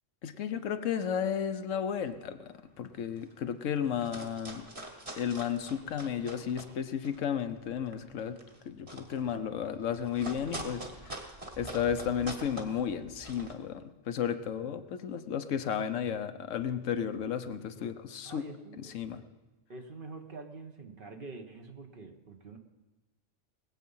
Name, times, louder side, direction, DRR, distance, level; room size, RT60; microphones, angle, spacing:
voice 1, 0.2-4.7 5.2-8.4 8.7-11.3 11.6-18.4 18.8-19.2, left 8 dB, 80° left, 9 dB, 1.2 m, -33 dB
sound 1, 2.0-2.3 2.8-2.9 3.0-3.5 3.8-6.7 7.0-13.5, right 1 dB, 25° right, 1.6 m, -44 dB
voice 2, 18.2-19.3 19.7-22.6, right 3 dB, 45° right, 4 dB, 1.3 m, -46 dB
20.5 x 8.2 x 5.5 m, 1.1 s
omnidirectional pair, 1.3 m